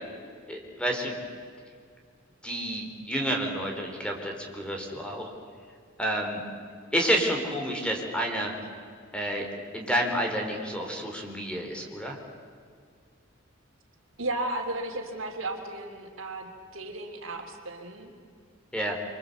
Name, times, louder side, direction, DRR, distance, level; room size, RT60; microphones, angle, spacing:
voice 1, 0.5-1.1 2.4-5.3 6.0-6.5 6.9-8.5 9.1-9.5 9.7-12.2 18.7-19.0, equal, 5° left, 1 dB, 4.4 m, -29 dB
voice 2, 14.2-18.1, right 2 dB, 70° right, 3 dB, 3.5 m, -34 dB
26.5 x 25.5 x 8.3 m, 2.2 s
head